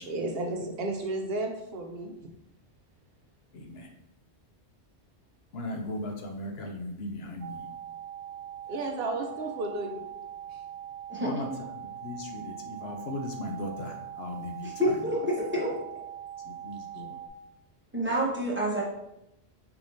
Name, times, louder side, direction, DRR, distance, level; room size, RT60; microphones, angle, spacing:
voice 1, 0.0-2.3 8.7-10.0 10.5-10.6 11.9-12.0, right 2 dB, 65° right, 3 dB, 0.8 m, -33 dB
voice 2, 3.5-3.9 5.5-7.7 11.2-11.5 11.8-15.0 16.5-17.2, left 1 dB, 70° left, 3 dB, 0.8 m, -37 dB
sound 1, 7.4-17.3, right 10 dB, 85° right, 1.0 m, -42 dB
voice 3, 11.1-11.4 14.6-15.2 15.5-15.7 17.9-18.8, equal, 10° right, -4 dB, 0.9 m, -28 dB
4.7 x 3.5 x 2.6 m, 0.86 s
omnidirectional pair, 1.1 m